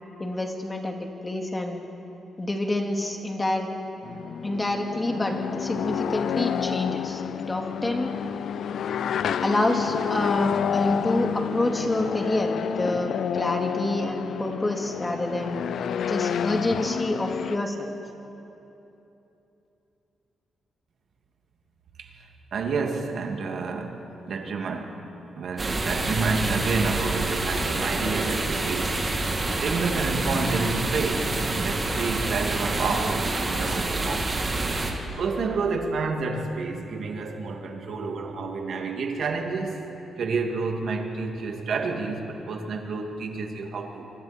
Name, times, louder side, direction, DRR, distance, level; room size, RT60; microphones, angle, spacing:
voice 1, 0.2-1.8 2.4-3.7 4.4-8.1 9.4-15.6 16.0-17.9, left 1 dB, 20° left, 3 dB, 2.4 m, -27 dB
sound 1, 4.0-17.6, left 8 dB, 70° left, 0.5 m, -29 dB
voice 2, 22.5-24.0 24.3-25.0 25.4-34.3 34.9-39.8 40.2-44.1, right 4 dB, 65° right, 3 dB, 2.5 m, -29 dB
sound 2, 25.6-34.9, right 2 dB, 30° right, 2.9 m, -27 dB
25.5 x 24.0 x 4.5 m, 3.0 s
cardioid pair, 100°, 0 cm